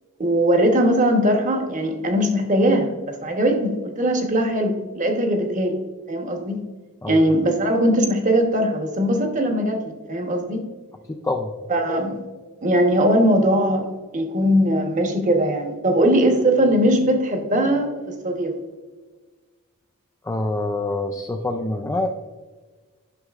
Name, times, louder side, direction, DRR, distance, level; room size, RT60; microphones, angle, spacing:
voice 1, 0.2-5.8 6.1-6.6 7.1-10.6 11.7-12.2 12.6-13.9 14.1-18.6, equal, 35° right, 4 dB, 1.0 m, -20 dB
voice 2, 11.1-11.5 20.2-22.1, left 2 dB, 15° left, 3 dB, 0.3 m, -25 dB
9.5 x 6.1 x 2.4 m, 1.3 s
head